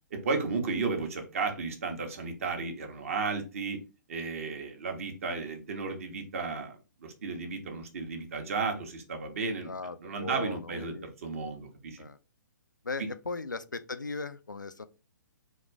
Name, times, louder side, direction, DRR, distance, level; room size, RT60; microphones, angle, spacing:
voice 1, 0.1-3.8 4.1-9.7 10.0-12.0 13.0-13.1, right 4 dB, 45° right, 1.0 m, -34 dB
voice 2, 9.7-11.1 12.0-12.2 12.8-14.8, left 4 dB, 80° left, 0.4 m, -38 dB
4.1 x 2.5 x 3.3 m
figure-of-eight pair, 125°, 10 cm